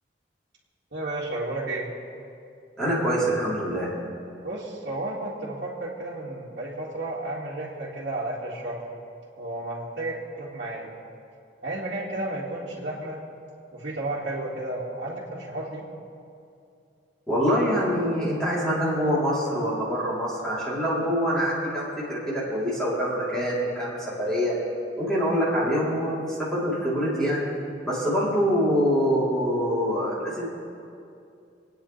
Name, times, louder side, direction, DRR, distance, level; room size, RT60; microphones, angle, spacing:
voice 1, 0.9-1.9 4.4-8.8 9.4-10.9 11.6-13.2 13.7-15.8, right 2 dB, 65° right, -9 dB, 2.1 m, -32 dB
voice 2, 2.8-3.9 17.3-24.5 25.0-27.4 27.8-30.5, equal, 5° left, -10 dB, 3.3 m, -25 dB
27.5 x 9.5 x 3.3 m, 2.5 s
head